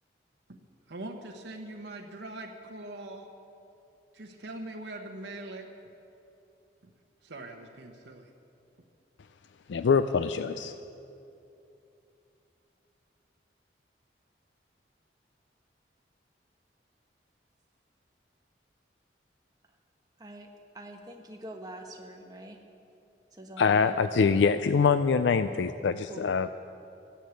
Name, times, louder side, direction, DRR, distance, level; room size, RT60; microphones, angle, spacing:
voice 1, 0.9-3.3 4.1-5.7 6.8-6.9 7.2-8.3, right 2 dB, 85° right, 1 dB, 1.1 m, -42 dB
voice 2, 9.7-10.7 23.6-26.5, left 5 dB, 80° left, 11 dB, 0.4 m, -24 dB
voice 3, 20.7-22.6 23.3-23.9 26.1-26.2, right 1 dB, 20° right, 2 dB, 1.3 m, -45 dB
14.0 x 10.0 x 8.2 m, 2.8 s
head